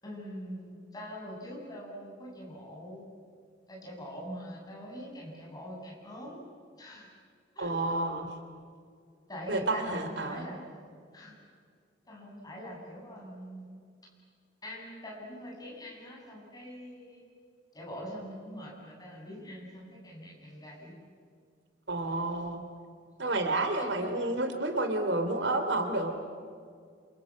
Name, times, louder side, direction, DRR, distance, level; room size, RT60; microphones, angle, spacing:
voice 1, 0.0-3.1 3.7-6.4 6.8-7.1 7.5-7.9 9.3-10.6 11.1-11.4 12.1-13.7 14.6-17.2 17.7-21.0 23.8-24.1 25.1-25.2, equal, 20° left, -3 dB, 7.9 m, -43 dB
voice 2, 7.6-8.3 9.5-10.4 21.9-22.6 23.2-26.1, right 2 dB, 70° right, 6 dB, 3.0 m, -30 dB
28.5 x 27.5 x 7.6 m, 2.2 s
head